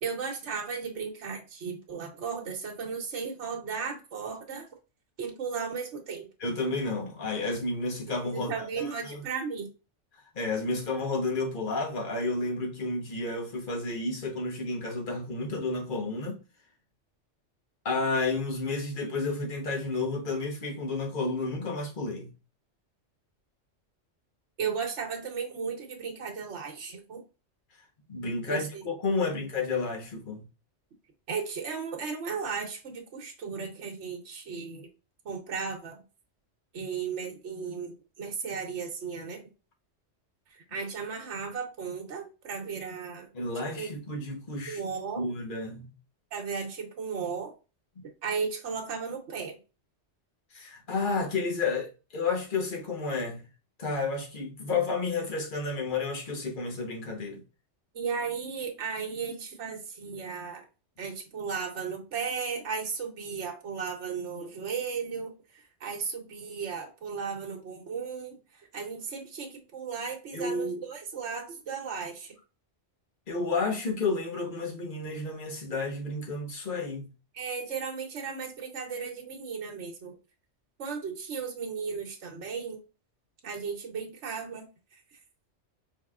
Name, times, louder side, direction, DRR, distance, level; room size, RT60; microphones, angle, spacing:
voice 1, 0.0-4.7 5.2-6.3 8.2-9.7 24.6-27.2 28.5-28.8 29.1-29.4 31.3-34.9 35.2-36.0 36.7-39.4 40.5-43.3 43.8-43.9 44.7-45.3 46.3-47.5 48.2-49.6 57.9-60.7 61.0-72.3 77.3-80.1 80.8-82.8 83.4-84.7, right 5 dB, 75° right, 1.3 m, -35 dB
voice 2, 6.4-8.5 8.8-9.2 10.3-16.4 17.8-22.3 28.1-30.5 43.3-44.8 45.2-45.9 50.5-53.4 53.8-57.4 70.3-70.8 73.3-77.1, left 3 dB, 45° left, 1.3 m, -31 dB
5.0 x 3.8 x 2.4 m
omnidirectional pair, 1.2 m